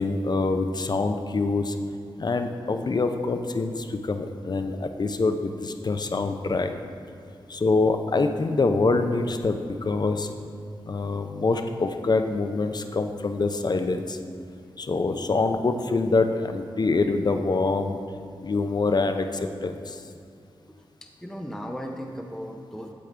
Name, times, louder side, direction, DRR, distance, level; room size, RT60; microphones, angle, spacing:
voice 1, 0.0-1.8 2.2-6.7 7.5-10.3 10.9-14.2 14.8-18.0 18.4-20.0, left 3 dB, 45° left, 7 dB, 0.6 m, -25 dB
voice 2, 20.7-22.9, equal, 5° left, 1 dB, 0.6 m, -37 dB
8.5 x 7.7 x 3.4 m, 2.4 s
cardioid pair, 50°, 10 cm